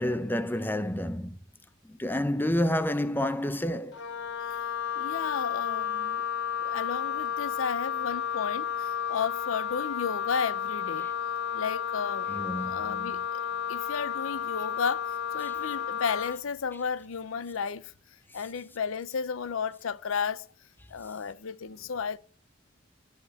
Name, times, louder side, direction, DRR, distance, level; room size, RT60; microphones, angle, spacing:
voice 1, 0.0-1.4 1.9-4.0 12.3-13.2, left 1 dB, 10° left, 0.6 m, -29 dB
Wind instrument woodwind instrument, 3.9-16.4, left 8 dB, 65° left, 0.9 m, -32 dB
voice 2, 5.0-6.2 6.6-11.1 11.5-12.3 12.6-13.4 13.7-15.1 15.3-17.9 18.3-20.5 20.9-22.2, left 6 dB, 85° left, 0.6 m, -33 dB
13.5 x 5.0 x 8.0 m
head